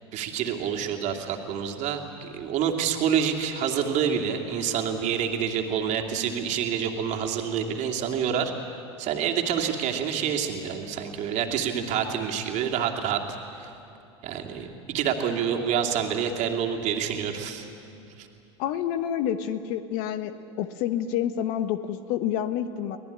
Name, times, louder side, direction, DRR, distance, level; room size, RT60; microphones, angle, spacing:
voice 1, 0.1-8.5 9.0-13.7 14.2-17.7 18.2-18.3, right 8 dB, 50° right, 2 dB, 2.7 m, -27 dB
voice 2, 18.6-23.0, left 10 dB, 60° left, 11 dB, 1.1 m, -28 dB
24.5 x 17.5 x 10.0 m, 2.7 s
hypercardioid pair, 90°, 15 cm